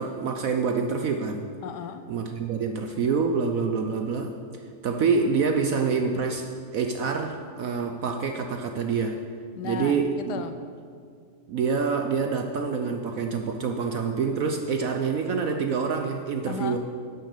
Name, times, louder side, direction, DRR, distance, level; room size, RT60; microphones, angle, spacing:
voice 1, 0.0-1.5 2.1-4.4 4.8-9.2 9.6-10.1 11.5-16.8, right 5 dB, 65° right, 5 dB, 0.9 m, -26 dB
voice 2, 1.6-2.2 9.5-10.7 16.5-16.8, left 7 dB, 75° left, 9 dB, 1.1 m, -36 dB
11.0 x 6.5 x 6.6 m, 2.2 s
omnidirectional pair, 2.0 m